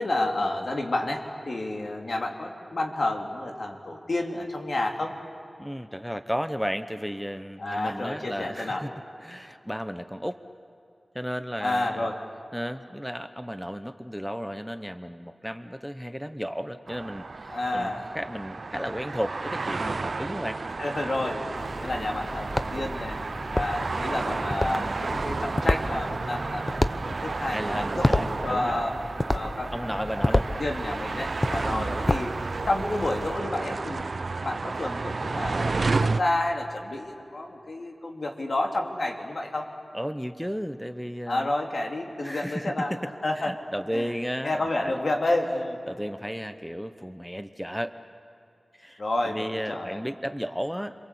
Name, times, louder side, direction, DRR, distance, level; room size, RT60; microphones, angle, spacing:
voice 1, 0.0-5.2 7.6-8.8 11.6-12.2 17.5-18.0 20.8-21.5 21.8-23.2 23.5-28.9 29.3-32.3 32.7-34.1 34.4-39.7 41.3-43.0 43.2-43.5 43.9-44.1 44.4-45.8 49.0-50.0, left 2 dB, 65° left, 2 dB, 3.1 m, -30 dB
voice 2, 5.6-8.9 9.2-10.4 11.1-12.1 12.5-20.6 27.5-28.8 29.7-30.5 31.5-32.0 39.9-41.5 42.2-43.0 43.4-44.9 45.9-47.9 48.8-51.0, equal, ahead, 10 dB, 1.0 m, -34 dB
sound 1, 16.9-36.2, right 3 dB, 70° right, 0.7 m, -32 dB
sound 2, 21.5-33.3, left 1 dB, 30° left, 0.9 m, -31 dB
29.5 x 23.0 x 8.4 m, 2.7 s
cardioid pair, 50°, 0 cm